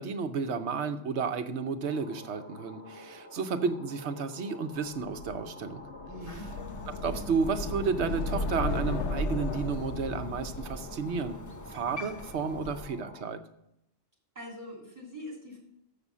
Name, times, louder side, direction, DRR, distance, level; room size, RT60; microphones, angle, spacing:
voice 1, 0.0-5.9 7.0-11.4 11.7-13.4, right 5 dB, 80° right, 9 dB, 1.1 m, -32 dB
sound 1, 1.8-13.3, left 1 dB, 65° left, 1.6 m, -49 dB
sound 2, 5.0-12.0, left 3 dB, 80° left, 1.1 m, -36 dB
voice 2, 6.1-6.5 14.4-15.6, left 1 dB, 35° right, -2 dB, 3.4 m, -43 dB
Crow, 6.3-12.8, equal, 25° left, 0.4 m, -43 dB
6.8 x 6.8 x 7.2 m, 0.80 s
omnidirectional pair, 1.1 m